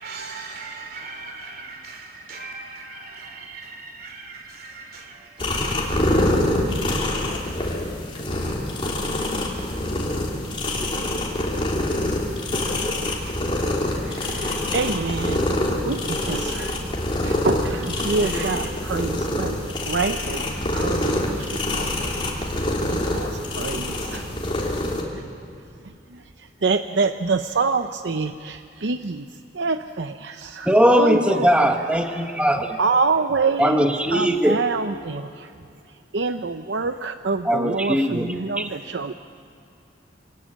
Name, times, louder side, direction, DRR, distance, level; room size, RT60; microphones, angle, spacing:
voice 1, 0.0-8.7 23.3-23.9, right 3 dB, 50° right, 2.8 m, -41 dB
sound 1, 5.4-25.0, left 1 dB, 30° left, 3.3 m, -25 dB
voice 2, 13.9-15.5 15.9-16.8 17.2-22.3 22.8-24.3 24.6-24.7 25.1-25.2 26.1-29.3 29.5-31.7 32.1-32.3 32.8-35.5 36.1-39.1, right 4 dB, 70° right, 0.7 m, -26 dB
voice 3, 30.6-32.8 33.6-34.6 37.4-38.7, equal, 5° right, 1.0 m, -20 dB
26.5 x 18.5 x 8.8 m
head